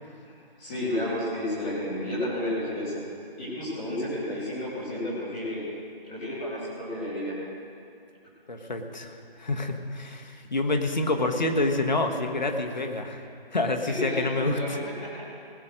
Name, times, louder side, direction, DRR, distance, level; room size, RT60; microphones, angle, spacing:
voice 1, 0.6-3.0 3.4-5.6 6.1-7.3 13.8-15.3, left 1 dB, 10° left, -11 dB, 2.8 m, -31 dB
voice 2, 8.5-13.2 13.5-14.8, left 2 dB, 50° left, 4 dB, 1.4 m, -27 dB
20.5 x 6.9 x 6.4 m, 2.5 s
figure-of-eight pair, 175°, 29 cm